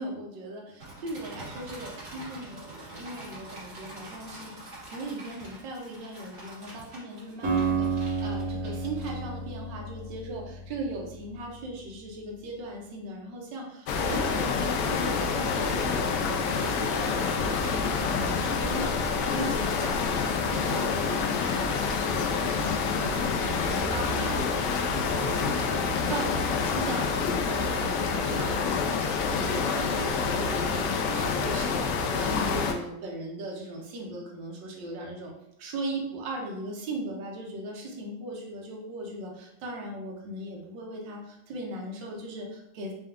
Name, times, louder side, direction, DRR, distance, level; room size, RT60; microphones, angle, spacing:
voice 1, 0.0-19.0 19.3-29.0 29.3-35.3 35.6-42.9, right 1 dB, 70° right, -1 dB, 1.5 m, -38 dB
sound 1, 0.8-9.5, right 2 dB, 35° right, 1.4 m, -45 dB
Acoustic guitar, 7.4-11.5, right 4 dB, 55° right, 1.2 m, -31 dB
sound 2, 13.9-32.7, left 5 dB, 75° left, 1.0 m, -27 dB
4.4 x 2.3 x 3.5 m, 0.79 s
omnidirectional pair, 2.1 m